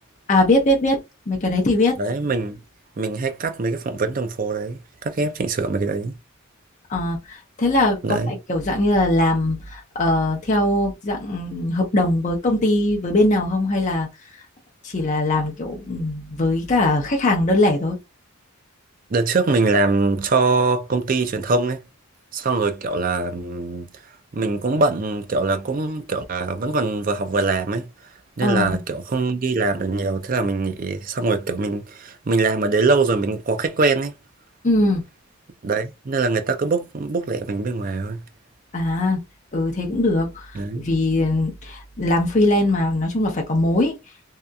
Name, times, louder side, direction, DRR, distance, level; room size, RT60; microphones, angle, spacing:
voice 1, 0.3-1.0 1.3-2.0 6.9-14.1 14.8-18.0 28.4-28.8 34.6-35.0 38.7-39.2 39.5-43.9, left 1 dB, 35° left, 0.6 m, -21 dB
voice 2, 2.0-2.6 3.0-6.1 8.0-8.3 19.1-21.8 22.3-27.9 28.4-34.2 35.6-38.2 40.5-40.9, right 3 dB, 40° right, 0.4 m, -23 dB
2.8 x 2.4 x 2.2 m
head